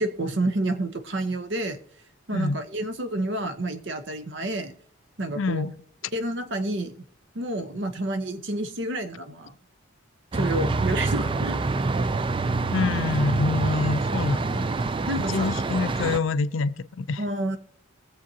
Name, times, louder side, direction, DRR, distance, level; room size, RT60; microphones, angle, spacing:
voice 1, 0.0-1.8 2.3-4.7 5.2-5.6 6.1-6.9 7.3-9.5 10.3-11.6 15.1-15.8 17.2-17.6, right 1 dB, 60° right, 0.9 m, -29 dB
voice 2, 5.4-5.8 12.7-14.7 15.3-17.2, left 4 dB, 70° left, 0.5 m, -26 dB
sound 1, 10.3-16.2, right 3 dB, 25° right, 0.3 m, -26 dB
22.0 x 7.4 x 2.8 m
head